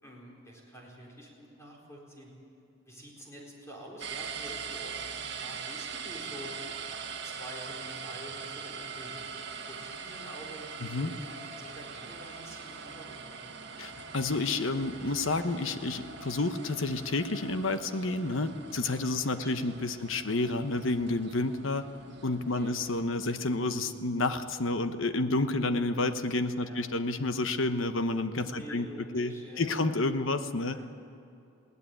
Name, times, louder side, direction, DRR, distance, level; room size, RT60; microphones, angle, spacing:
voice 1, 0.0-2.3 2.8-6.5 6.9-9.2 9.7-13.4 19.1-19.5 22.5-22.9 23.2-23.8 25.2-25.5 26.6-26.8 28.4-30.2 30.7-30.8, equal, 15° left, -2 dB, 4.4 m, -48 dB
sound 1, 4.0-23.0, right 6 dB, 55° right, 1.7 m, -42 dB
voice 2, 10.8-11.1 13.8-21.8 22.2-28.9 29.1-30.8, left 2 dB, 70° left, 9 dB, 1.1 m, -30 dB
21.0 x 17.0 x 9.2 m, 2.6 s
head